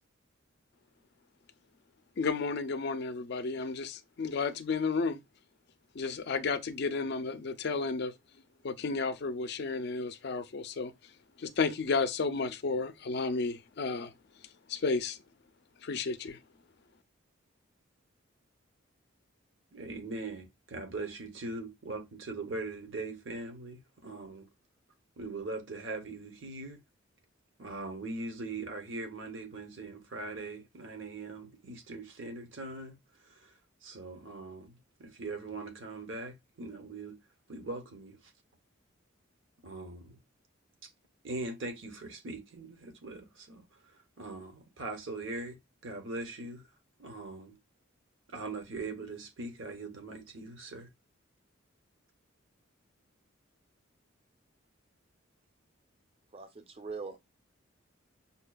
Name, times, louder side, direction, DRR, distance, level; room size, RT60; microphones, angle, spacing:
voice 1, 2.2-5.2 5.9-8.1 8.6-10.9 11.4-14.1 14.7-15.2 15.8-16.4, left 4 dB, 55° left, 0.4 m, -32 dB
voice 2, 19.7-24.5 25.2-26.8 27.6-33.0 33.2-33.5 33.8-37.2 37.5-38.2 39.6-40.2 40.8-40.9 41.2-43.6 44.2-46.7 47.0-47.6 48.3-50.9, right 3 dB, 65° right, 0.8 m, -41 dB
voice 3, 56.3-57.2, right 4 dB, 30° right, 0.5 m, -41 dB
5.3 x 2.3 x 2.2 m
head